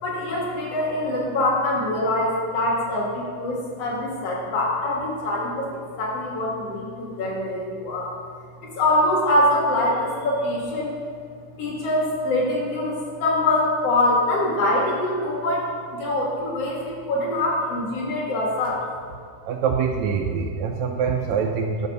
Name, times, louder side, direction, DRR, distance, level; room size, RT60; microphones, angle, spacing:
voice 1, 0.0-8.1 8.6-11.0 11.6-18.8, left 1 dB, 50° left, -3 dB, 2.6 m, -24 dB
voice 2, 19.5-21.9, right 6 dB, 80° right, 3 dB, 1.7 m, -24 dB
11.0 x 6.0 x 5.3 m, 2.1 s
omnidirectional pair, 3.7 m